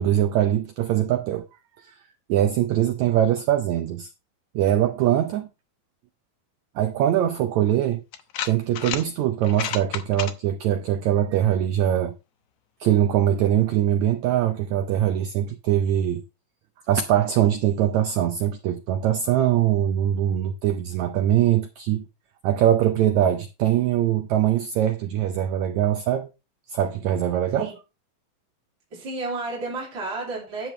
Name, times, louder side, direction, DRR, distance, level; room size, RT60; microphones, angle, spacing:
voice 1, 0.0-1.4 1.8-2.0 2.3-4.1 4.5-5.5 6.7-8.0 8.4-12.1 12.8-16.2 16.9-22.0 22.4-26.3 26.7-27.7, right 11 dB, 90° right, 1.6 m, -22 dB
sound 1, 7.3-7.4 8.1-9.0 9.4-10.3, left 9 dB, 80° left, 1.4 m, -30 dB
voice 2, 28.9-30.7, right 3 dB, 35° right, 3.1 m, -31 dB
10.5 x 7.9 x 3.2 m
omnidirectional pair, 4.1 m